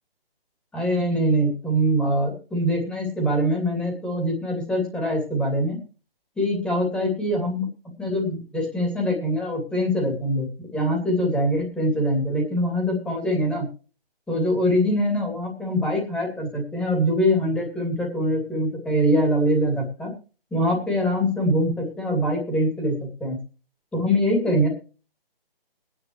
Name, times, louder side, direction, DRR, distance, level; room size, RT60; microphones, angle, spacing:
voice 1, 0.7-5.8 6.4-7.7 8.0-13.7 14.3-20.1 20.5-22.9 23.2-23.4 23.9-24.7, equal, 5° left, 0 dB, 2.6 m, -23 dB
22.0 x 10.0 x 3.1 m, 0.35 s
figure-of-eight pair, 160°, 30 cm